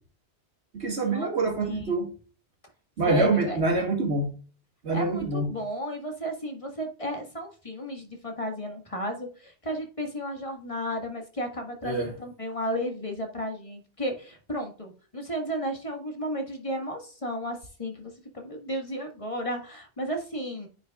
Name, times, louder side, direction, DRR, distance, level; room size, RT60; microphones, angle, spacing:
voice 1, 0.7-2.1 3.0-4.4 4.8-5.5 11.8-12.1, right 3 dB, 70° right, 2.3 m, -26 dB
voice 2, 1.6-2.0 3.1-3.6 4.9-20.7, equal, 30° left, 1.7 m, -33 dB
9.7 x 5.7 x 2.4 m
omnidirectional pair, 1.2 m